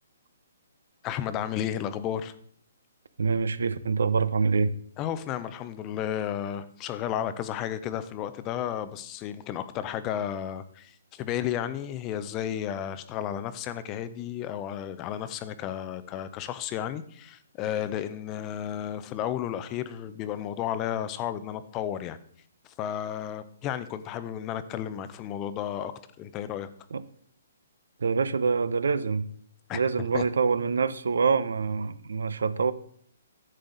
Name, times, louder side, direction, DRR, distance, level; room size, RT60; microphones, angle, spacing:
voice 1, 1.0-2.3 5.0-22.2 22.8-25.9 26.2-26.7 29.7-29.8 30.1-30.2, left 10 dB, 20° left, 0.6 m, -33 dB
voice 2, 3.2-4.8 26.9-27.0 28.0-29.3 29.7-32.7, right 5 dB, 80° right, 0.7 m, -25 dB
10.5 x 7.8 x 3.9 m
hypercardioid pair, 160°, 0 cm